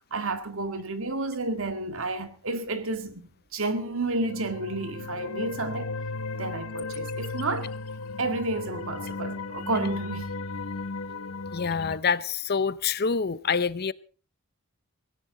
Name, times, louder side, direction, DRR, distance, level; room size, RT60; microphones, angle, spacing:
voice 1, 0.1-5.9 6.3-7.7 8.2-10.3, right 2 dB, 60° right, 1.9 m, -31 dB
sound 1, 4.1-12.0, left 3 dB, 75° left, 0.9 m, -35 dB
voice 2, 11.5-13.9, left 6 dB, 45° left, 0.7 m, -26 dB
18.5 x 16.5 x 3.9 m
head